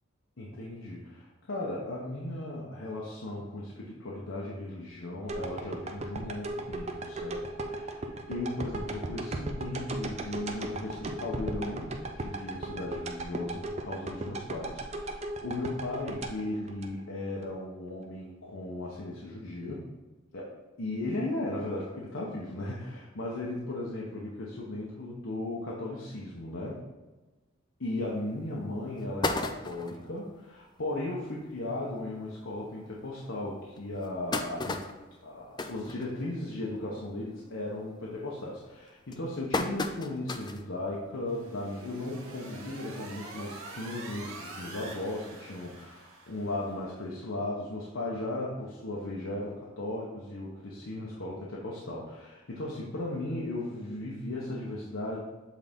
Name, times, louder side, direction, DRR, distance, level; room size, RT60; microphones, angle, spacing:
voice 1, 0.4-19.9 20.3-20.5 20.8-26.8 27.8-34.9 35.2-55.2, left 2 dB, 75° left, -4 dB, 1.0 m, -36 dB
sound 1, 5.3-17.5 17.9-18.0, right 2 dB, 30° right, 0.5 m, -37 dB
sound 2, 28.1-28.2 28.7-28.8 29.0-30.1 30.6-30.7 31.0-31.1 31.4-31.6 32.3-32.4 32.9-33.0 33.8-36.6 37.0-37.3 37.6-38.0 38.7-40.7 41.1-41.2 42.4-42.5, left 3 dB, 20° left, 0.3 m, -34 dB
sound 3, 41.3-46.8, right 2 dB, 85° right, 1.1 m, -46 dB
7.5 x 4.0 x 3.6 m, 1.2 s
head